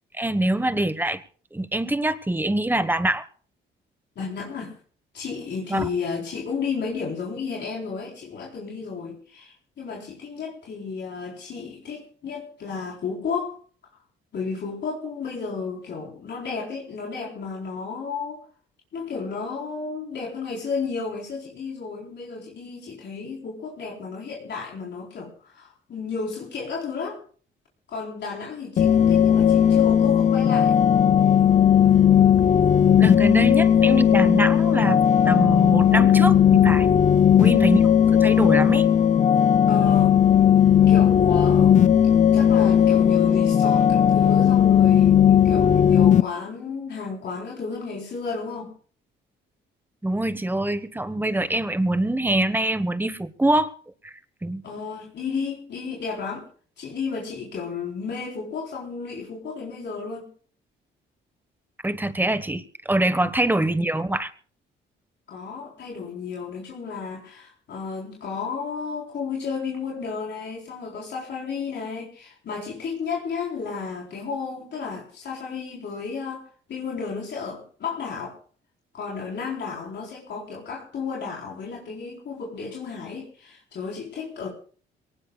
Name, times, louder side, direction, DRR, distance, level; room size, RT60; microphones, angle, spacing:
voice 1, 0.1-1.2 1.5-3.3 5.7-5.9 33.0-36.9 37.4-37.8 38.2-38.8 50.0-53.7 54.0-54.1 54.4-54.6 61.8-64.3, right 1 dB, 10° right, 1.3 m, -24 dB
voice 2, 4.2-4.7 5.1-13.6 14.3-18.4 18.9-27.2 27.9-30.7 37.1-37.6 39.7-40.2 40.9-41.8 42.3-48.7 54.6-56.4 56.8-60.3 63.2-63.3 65.3-78.3 78.9-84.5, left 5 dB, 60° left, 4.1 m, -32 dB
sound 1, 28.8-46.2, left 9 dB, 40° left, 0.6 m, -17 dB
23.5 x 18.5 x 2.4 m
cardioid pair, 90°, 20 cm